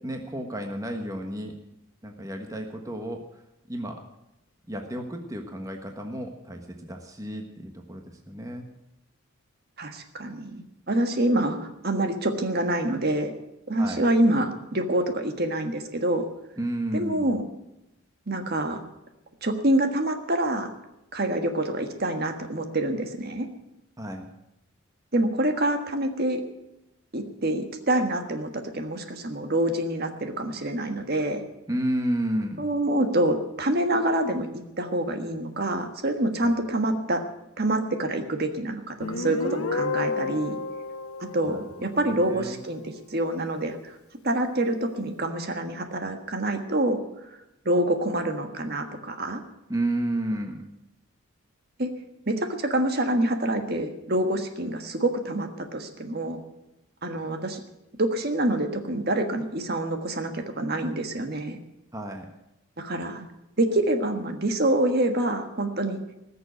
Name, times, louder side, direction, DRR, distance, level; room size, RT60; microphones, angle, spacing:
voice 1, 0.0-1.5 2.0-3.2 3.7-4.0 4.7-8.6 13.8-14.0 16.6-17.3 24.0-24.2 31.7-32.6 36.4-36.5 41.5-42.6 49.7-50.6 61.9-62.3, right 1 dB, 15° right, 3 dB, 1.3 m, -32 dB
voice 2, 9.8-11.6 11.8-13.3 13.7-16.3 16.9-17.4 18.3-18.8 19.4-20.7 21.1-23.5 25.1-26.4 27.1-31.4 32.6-37.2 37.6-40.6 41.3-44.0 44.2-47.0 47.6-49.4 51.8-51.9 52.3-56.4 57.0-57.6 58.0-61.6 62.8-63.2 63.6-66.0, right 1 dB, 45° right, 6 dB, 1.5 m, -26 dB
Guitar, 39.0-42.5, left 3 dB, 85° left, 1.4 m, -32 dB
19.5 x 6.9 x 9.2 m, 0.90 s
head